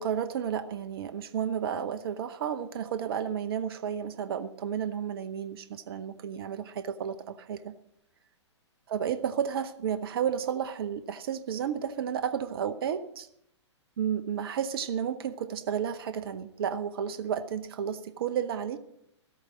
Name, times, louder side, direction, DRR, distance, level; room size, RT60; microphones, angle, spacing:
voice 1, 0.0-7.7 8.9-13.3 14.0-18.8, right 8 dB, 55° right, 12 dB, 0.9 m, -32 dB
13.5 x 8.9 x 7.2 m, 0.75 s
figure-of-eight pair, 115°, 15 cm